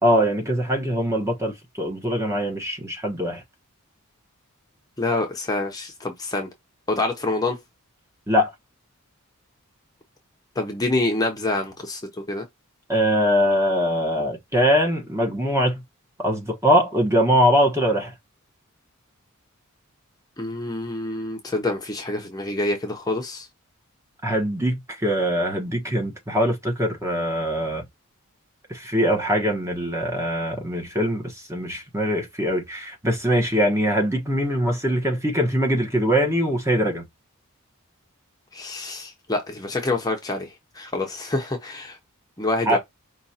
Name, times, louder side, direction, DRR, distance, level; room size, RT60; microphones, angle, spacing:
voice 1, 0.0-3.4 8.3-8.5 12.9-15.8 16.2-18.1 24.2-27.8 28.7-37.0 42.7-42.8, equal, 15° right, 1.2 m, -22 dB
voice 2, 5.0-6.5 6.9-7.6 10.6-12.0 12.3-12.4 20.4-23.5 38.5-42.0 42.4-42.8, left 2 dB, 15° left, 0.9 m, -26 dB
5.3 x 3.1 x 2.8 m
head